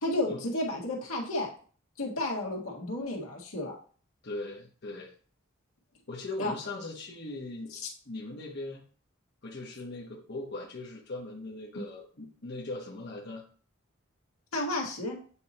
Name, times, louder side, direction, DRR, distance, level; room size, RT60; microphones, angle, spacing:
voice 1, 0.0-1.5 2.0-3.7 6.4-6.5 7.7-7.8 11.7-11.8 14.5-15.2, left 1 dB, 85° left, -1 dB, 1.7 m, -32 dB
voice 2, 4.2-5.1 6.1-7.8 8.0-8.8 9.4-13.4, left 2 dB, 50° left, -2 dB, 1.0 m, -39 dB
8.3 x 2.9 x 4.2 m, 0.43 s
head